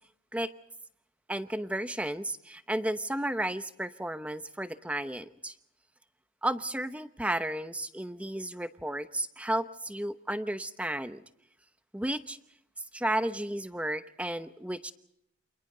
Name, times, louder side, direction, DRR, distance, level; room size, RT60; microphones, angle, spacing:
voice 1, 1.3-5.5 6.4-11.2 11.9-12.4 12.9-14.9, right 1 dB, 5° right, 11 dB, 0.9 m, -33 dB
28.5 x 28.0 x 3.9 m, 0.73 s
head